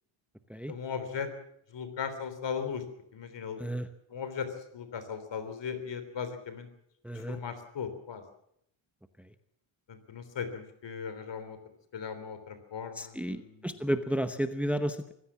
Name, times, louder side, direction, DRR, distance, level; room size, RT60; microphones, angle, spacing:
voice 1, 0.7-1.3 1.7-2.8 3.1-3.6 4.1-4.5 4.7-6.7 7.3-8.2 9.9-11.6 11.9-13.9, left 6 dB, 60° left, 10 dB, 3.4 m, -37 dB
voice 2, 7.0-7.4 13.0-15.1, equal, 5° right, 9 dB, 0.9 m, -32 dB
24.0 x 16.0 x 7.2 m, 0.73 s
wide cardioid pair, 180°, 48 cm